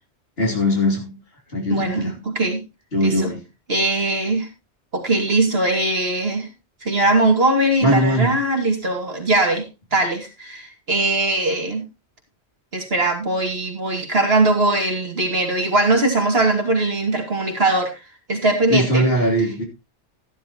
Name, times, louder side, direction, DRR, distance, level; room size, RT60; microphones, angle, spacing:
voice 1, 0.4-1.2 1.5-2.1 2.9-3.4 7.8-8.3 18.7-19.6, equal, 60° left, 3.1 m, -20 dB
voice 2, 1.7-2.6 3.0-3.3 3.7-4.5 4.9-6.5 6.8-9.7 9.9-11.9 12.7-17.9 18.3-19.1, right 2 dB, 60° right, 2.7 m, -20 dB
13.0 x 11.5 x 3.0 m
omnidirectional pair, 1.2 m